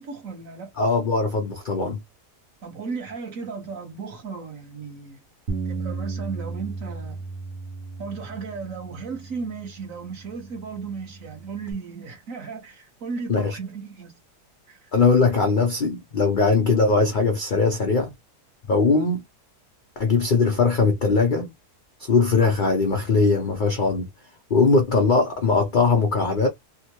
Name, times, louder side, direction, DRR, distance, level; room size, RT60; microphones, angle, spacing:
voice 1, 0.0-0.7 2.6-5.2 5.6-7.2 8.0-14.1 14.7-14.9, right 5 dB, 55° right, 1.5 m, -35 dB
voice 2, 0.8-2.0 13.3-13.6 14.9-18.1 18.7-19.2 20.0-21.5 22.0-24.1 24.5-26.5, left 4 dB, 60° left, 0.5 m, -20 dB
Bass guitar, 5.5-11.7, right 3 dB, 85° right, 1.4 m, -35 dB
3.5 x 2.1 x 2.9 m
omnidirectional pair, 1.7 m